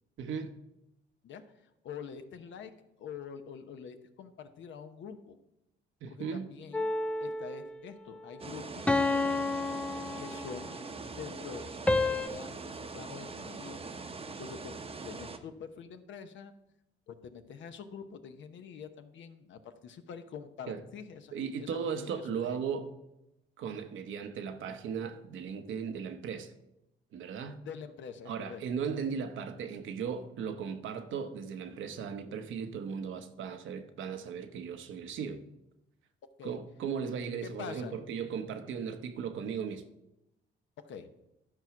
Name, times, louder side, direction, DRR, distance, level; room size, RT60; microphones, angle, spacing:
voice 1, 0.2-0.5 6.0-6.5 20.7-20.8 21.3-22.9 23.6-26.5 27.1-27.6 28.3-35.4 36.4-39.8, right 6 dB, 75° right, 0.9 m, -37 dB
voice 2, 1.8-2.7 3.0-5.4 6.1-6.9 7.2-9.7 10.2-10.7 11.2-14.7 15.0-16.5 17.1-22.6 27.6-28.6 36.4-36.6 37.4-38.0 40.9-41.1, left 7 dB, 70° left, 0.9 m, -46 dB
sound 1, 6.7-7.7 8.9-10.8 11.9-12.3, left 2 dB, 5° left, 0.3 m, -30 dB
sound 2, 8.4-15.4, right 4 dB, 30° right, 0.8 m, -42 dB
12.0 x 4.6 x 5.8 m
cardioid pair, 90°, 20 cm